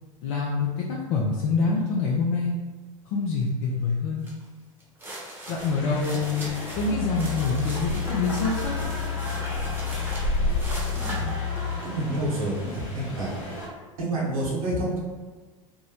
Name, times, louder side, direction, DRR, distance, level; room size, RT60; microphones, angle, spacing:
voice 1, 0.2-2.5 3.1-4.3 5.5-6.5 6.8-8.9, left 4 dB, 60° left, -3 dB, 0.4 m, -26 dB
sound 1, 4.2-4.4 4.8-12.2, right 1 dB, 10° right, 0.8 m, -40 dB
sound 2, 5.6-13.7, equal, 80° left, 0.8 m, -33 dB
sound 3, 6.7-11.8, left 9 dB, 20° left, 1.0 m, -31 dB
voice 2, 10.9-11.3 11.8-13.3 14.0-15.0, right 1 dB, 80° right, -6 dB, 1.0 m, -28 dB
2.6 x 2.0 x 2.8 m, 1.4 s
hypercardioid pair, 80°, 17 cm